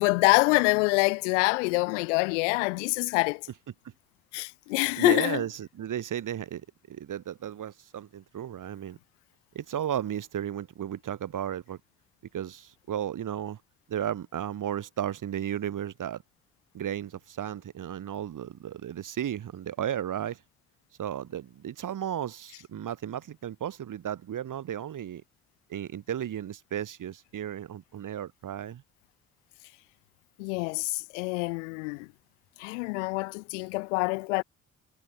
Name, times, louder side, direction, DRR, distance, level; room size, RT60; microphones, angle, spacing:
voice 1, 0.0-3.5 4.3-5.4 30.4-32.1 32.6-34.4, left 29 dB, 70° left, 0.5 m, -26 dB
voice 2, 5.0-9.0 9.6-11.8 12.3-13.6 13.9-16.2 16.7-20.4 21.0-25.2 25.7-28.8, right 10 dB, 55° right, 5.2 m, -34 dB
figure-of-eight pair, 40°, 38 cm